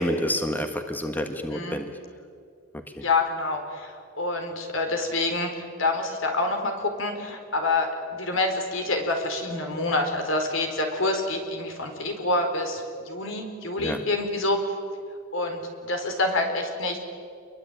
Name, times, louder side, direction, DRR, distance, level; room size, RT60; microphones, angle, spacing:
voice 1, 0.0-1.9 3.0-3.1 13.8-14.0, equal, 10° left, 6 dB, 1.5 m, -28 dB
voice 2, 3.0-14.6 15.3-17.0, left 2 dB, 70° left, 4 dB, 4.4 m, -27 dB
28.0 x 22.5 x 9.2 m, 2.2 s
head